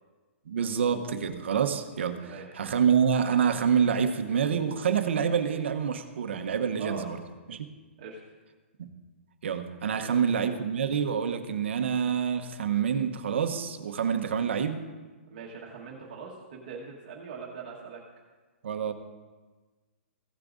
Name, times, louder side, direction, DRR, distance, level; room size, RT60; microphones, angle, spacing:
voice 1, 0.5-7.2 7.5-7.7 8.8-8.9 9.4-14.8 18.6-18.9, right 7 dB, 60° right, 7 dB, 0.9 m, -27 dB
voice 2, 2.2-2.5 6.8-7.1 8.0-8.2 9.9-10.2 15.3-18.0, right 5 dB, 35° right, -4 dB, 1.4 m, -41 dB
16.0 x 8.3 x 2.6 m, 1.3 s
hypercardioid pair, 175°, 7 cm